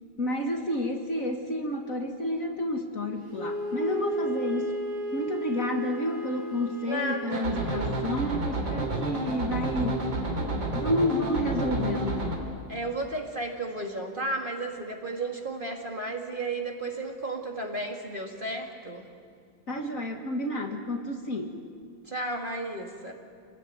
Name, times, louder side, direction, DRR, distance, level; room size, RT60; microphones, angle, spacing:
voice 1, 0.2-4.8 5.1-10.0 10.7-12.4 19.7-21.5, left 1 dB, 40° left, 3 dB, 2.1 m, -30 dB
Wind instrument woodwind instrument, 3.3-7.8, right 1 dB, 50° right, 4.3 m, -34 dB
voice 2, 6.9-7.5 12.7-19.1 22.1-23.1, right 2 dB, 25° right, 2 dB, 2.2 m, -33 dB
sound 1, 7.3-12.4, right 1 dB, 65° right, 4.0 m, -30 dB
27.0 x 20.0 x 9.5 m, 2.2 s
omnidirectional pair, 2.2 m